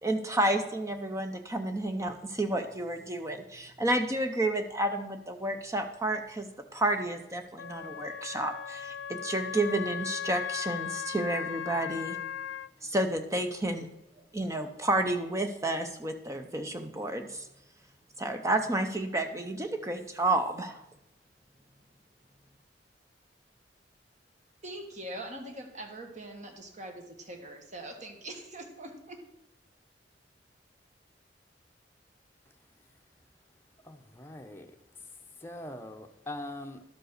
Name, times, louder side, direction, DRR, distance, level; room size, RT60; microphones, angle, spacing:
voice 1, 0.0-12.2 12.8-13.9 14.3-17.5 18.2-20.8, right 1 dB, 15° right, 6 dB, 0.6 m, -30 dB
Wind instrument woodwind instrument, 7.6-12.7, left 8 dB, 90° left, 0.4 m, -37 dB
voice 2, 24.6-29.2, right 1 dB, 40° right, 4 dB, 1.6 m, -43 dB
voice 3, 33.8-36.8, left 1 dB, 15° left, 4 dB, 0.8 m, -43 dB
12.0 x 5.3 x 6.5 m, 0.89 s
head